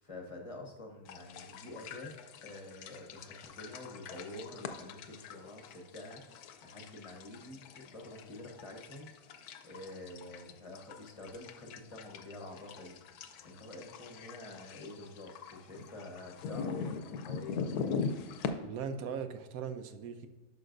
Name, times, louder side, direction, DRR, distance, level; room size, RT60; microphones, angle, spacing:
voice 1, 0.0-9.1 9.6-13.0 13.4-17.9, left 2 dB, 25° left, 1 dB, 1.0 m, -48 dB
sound 1, 1.1-18.5, left 5 dB, 80° left, 1.2 m, -42 dB
voice 2, 18.6-20.3, right 6 dB, 70° right, 9 dB, 1.1 m, -39 dB
10.5 x 5.9 x 2.6 m, 1.2 s
omnidirectional pair, 1.6 m